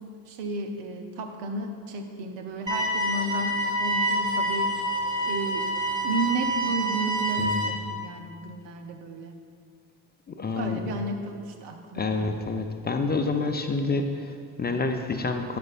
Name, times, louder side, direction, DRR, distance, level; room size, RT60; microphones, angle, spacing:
voice 1, 0.3-4.7 5.3-5.7 6.0-9.3 10.6-12.4, right 2 dB, 80° right, 4 dB, 0.7 m, -33 dB
sound 1, 2.7-7.7, right 1 dB, 10° right, 1.4 m, -27 dB
voice 2, 7.4-7.7 10.3-10.8 11.9-15.6, left 3 dB, 20° left, 5 dB, 0.5 m, -28 dB
8.5 x 6.2 x 2.4 m, 2.2 s
hypercardioid pair, 40°, 46 cm